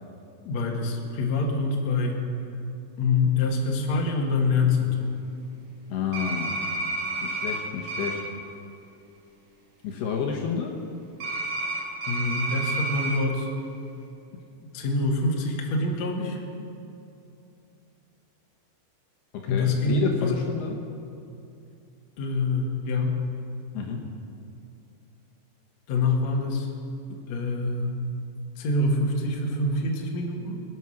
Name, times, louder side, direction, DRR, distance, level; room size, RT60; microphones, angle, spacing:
voice 1, 0.4-2.2 3.0-5.1 12.1-13.5 14.6-16.4 19.5-20.3 22.2-23.2 25.9-26.7 27.3-28.0 28.6-30.6, left 3 dB, 50° left, 0 dB, 2.3 m, -25 dB
voice 2, 5.9-6.6 7.2-8.2 9.8-10.8 19.3-20.8 23.7-24.1 27.1-27.2, left 6 dB, 70° left, 0 dB, 2.9 m, -30 dB
sound 1, 6.1-7.6 7.9-8.1 11.2-13.2, right 2 dB, 35° right, 3.8 m, -30 dB
24.0 x 9.1 x 6.4 m, 2.7 s
omnidirectional pair, 5.2 m